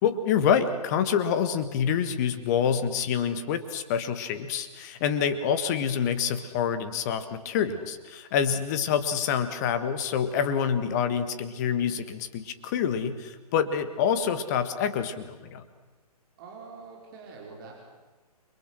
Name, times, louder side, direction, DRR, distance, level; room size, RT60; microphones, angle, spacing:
voice 1, 0.0-15.6, left 7 dB, 25° left, 10 dB, 1.7 m, -27 dB
voice 2, 16.4-17.8, right 4 dB, 35° right, -2 dB, 5.3 m, -45 dB
29.5 x 23.5 x 6.3 m, 1.2 s
figure-of-eight pair, 130°, 20 cm